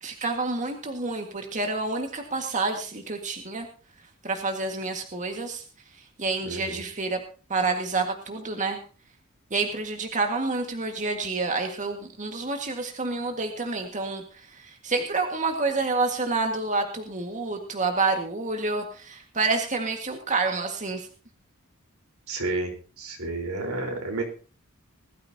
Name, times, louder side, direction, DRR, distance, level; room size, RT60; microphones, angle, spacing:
voice 1, 0.0-3.7 4.0-7.2 7.5-8.8 9.5-21.1, right 3 dB, 35° right, 3 dB, 1.8 m, -28 dB
voice 2, 6.4-6.8 22.3-24.2, right 2 dB, 85° right, 3 dB, 4.3 m, -31 dB
20.5 x 13.5 x 2.8 m, 0.37 s
head